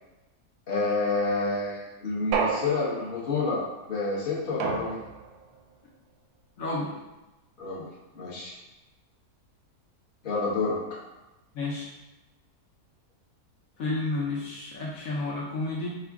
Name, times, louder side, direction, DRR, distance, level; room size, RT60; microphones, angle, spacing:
voice 1, 0.7-5.0 7.6-8.5 10.2-10.8, left 3 dB, 40° left, -6 dB, 1.1 m, -29 dB
sound 1, 2.3-3.3 4.6-5.4, right 5 dB, 80° right, 1.1 m, -30 dB
voice 2, 6.6-6.9 11.5-11.9 13.8-15.9, left 2 dB, 65° left, -6 dB, 1.2 m, -31 dB
4.8 x 2.3 x 3.5 m, 1.0 s
omnidirectional pair, 1.6 m